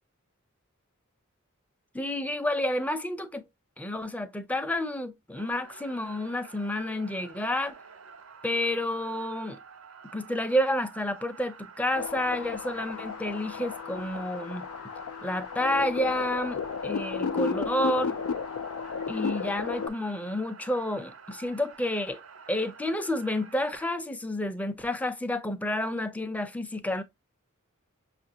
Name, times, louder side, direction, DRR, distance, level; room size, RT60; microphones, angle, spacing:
voice 1, 1.9-3.4 3.8-7.8 8.4-9.6 10.1-14.7 15.2-18.1 19.1-22.2 22.5-27.0, left 1 dB, 5° left, 0.4 m, -30 dB
sound 1, 5.4-23.8, right 6 dB, 85° right, 0.8 m, -49 dB
sound 2, 12.0-19.9, left 5 dB, 90° left, 0.4 m, -33 dB
5.9 x 2.5 x 2.7 m
head